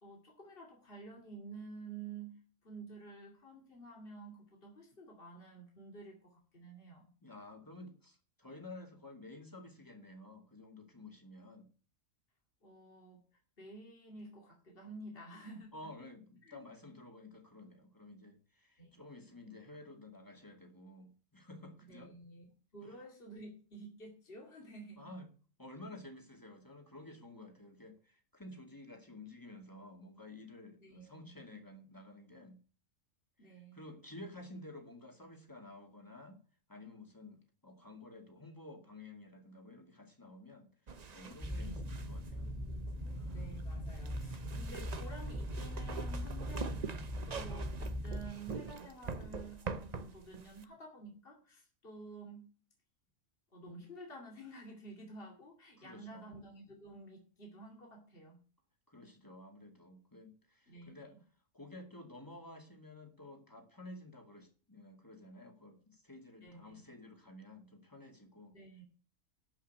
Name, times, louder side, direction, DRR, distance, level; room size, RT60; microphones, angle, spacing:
voice 1, 0.0-7.1 12.6-13.2 13.6-15.9 16.4-16.6 18.8-19.0 21.8-22.5 22.7-25.1 30.8-31.3 33.4-34.0 41.4-41.8 43.3-52.5 53.5-58.4 60.7-61.2 66.4-66.8 68.5-68.8, right 2 dB, 45° left, 0 dB, 2.8 m, -51 dB
voice 2, 7.2-11.7 15.7-22.1 22.8-23.0 25.0-25.3 25.6-32.6 33.4-36.4 36.7-42.5 43.1-43.5 55.8-56.3 58.9-61.2 61.5-68.5, left 2 dB, 15° left, 3 dB, 2.3 m, -52 dB
sound 1, 40.9-50.6, right 5 dB, 40° right, 0.8 m, -45 dB
sound 2, 41.4-48.3, equal, 5° right, 2.5 m, -40 dB
12.5 x 5.6 x 8.2 m, 0.39 s
omnidirectional pair, 1.3 m